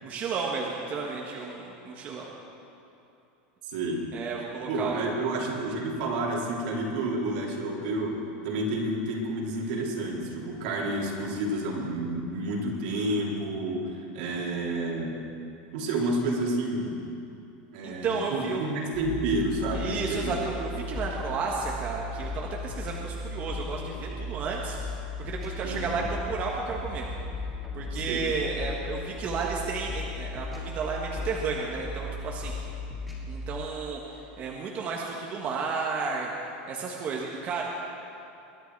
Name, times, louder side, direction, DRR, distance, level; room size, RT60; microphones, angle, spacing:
voice 1, 0.0-2.3 4.1-5.0 17.8-18.6 19.7-27.1 27.7-32.5 33.3-36.3 36.7-37.6, right 4 dB, 35° right, -2 dB, 1.5 m, -32 dB
voice 2, 3.6-4.0 4.7-15.1 15.7-17.0 17.7-20.3 25.6-25.9 27.9-28.2, right 1 dB, 70° right, -2 dB, 3.2 m, -30 dB
sound 1, 18.9-33.6, left 2 dB, ahead, 2.8 m, -36 dB
22.0 x 10.5 x 4.7 m, 2.8 s
supercardioid pair, 145°, 5 cm